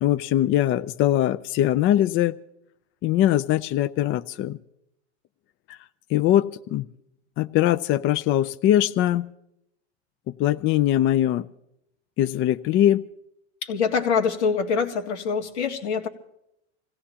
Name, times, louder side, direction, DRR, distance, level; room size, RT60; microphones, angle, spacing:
voice 1, 0.0-2.3 3.0-4.6 6.1-6.9 7.4-9.3 10.3-11.5 12.2-13.0, left 12 dB, 35° left, 12 dB, 0.5 m, -21 dB
voice 2, 13.6-16.1, left 6 dB, 90° left, 3 dB, 2.1 m, -24 dB
27.0 x 17.0 x 2.9 m, 0.81 s
supercardioid pair, 110°, 34 cm